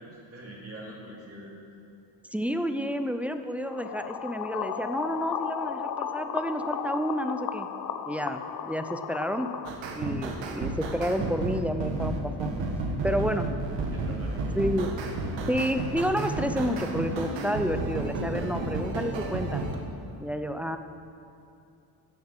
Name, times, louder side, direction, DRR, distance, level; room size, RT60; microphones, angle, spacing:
voice 1, 0.0-1.5 13.0-13.4 13.9-14.4, right 2 dB, 30° right, -5 dB, 2.8 m, -43 dB
voice 2, 2.3-7.7 8.1-8.4 8.7-9.5 9.9-12.5 13.0-13.5 14.5-14.9 15.5-19.6 20.2-20.8, equal, 5° right, 8 dB, 0.4 m, -30 dB
sound 1, 3.6-9.7, left 8 dB, 50° left, 0.8 m, -34 dB
sound 2, 9.6-19.7, right 2 dB, 75° right, 1.7 m, -32 dB
11.5 x 7.9 x 7.9 m, 2.6 s
cardioid pair, 125°, 44 cm